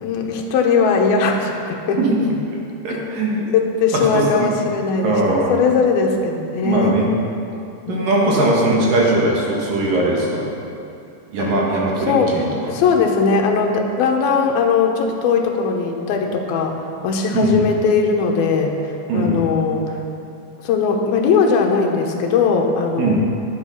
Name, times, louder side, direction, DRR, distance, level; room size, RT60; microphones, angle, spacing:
voice 1, 0.0-2.0 2.9-3.0 3.5-7.0 7.9-8.0 11.4-20.0 20.6-23.1, left 5 dB, 80° left, 2 dB, 2.9 m, -19 dB
voice 2, 2.0-2.4 2.8-3.5 3.9-4.5 5.0-5.5 6.6-7.1 7.9-10.4 11.3-12.5 17.3-17.7 19.1-19.4 23.0-23.1, right 2 dB, 65° right, -3 dB, 3.4 m, -19 dB
10.5 x 10.5 x 5.7 m, 2.6 s
omnidirectional pair, 4.3 m